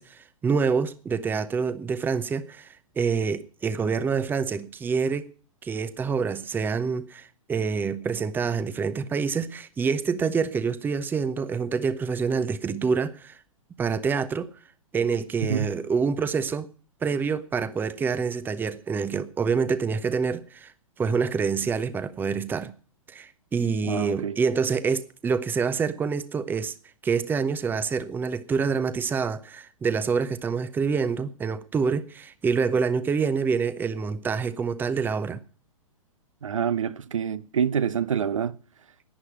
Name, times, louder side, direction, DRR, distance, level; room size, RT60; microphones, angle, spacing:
voice 1, 0.0-5.3 5.6-13.4 13.8-14.5 14.9-16.7 17.0-20.7 21.0-22.7 23.1-26.7 27.0-35.4, right 5 dB, 10° right, 0.8 m, -26 dB
voice 2, 15.4-15.7 23.8-24.4 36.4-38.5, right 7 dB, 70° right, 0.9 m, -26 dB
11.5 x 10.0 x 8.2 m
figure-of-eight pair, 110°, 17 cm